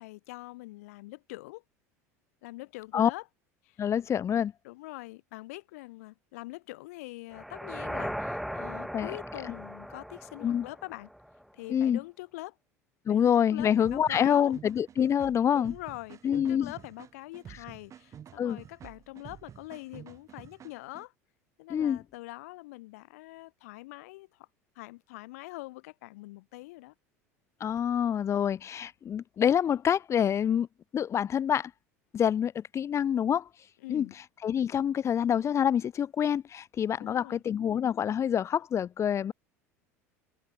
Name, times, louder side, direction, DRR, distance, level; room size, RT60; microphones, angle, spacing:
voice 1, 0.0-1.6 2.4-3.2 3.6-3.9 4.6-11.1 11.5-12.6 13.1-14.5 15.5-21.1 21.6-24.5 24.8-26.9 33.8-34.2 37.0-37.4, left 21 dB, 70° left, 1.7 m, -44 dB
voice 2, 3.8-4.5 8.9-9.1 10.4-10.7 11.7-12.0 13.1-15.7 16.2-16.7 18.4-18.6 21.7-22.0 27.6-30.7 30.9-31.7 32.1-33.5 33.9-34.1 34.4-39.3, left 9 dB, 35° left, 1.0 m, -26 dB
sound 1, 7.3-11.4, equal, ahead, 1.8 m, -38 dB
sound 2, 13.8-21.0, right 9 dB, 35° right, 3.0 m, -50 dB
hypercardioid pair, 75°, 8 cm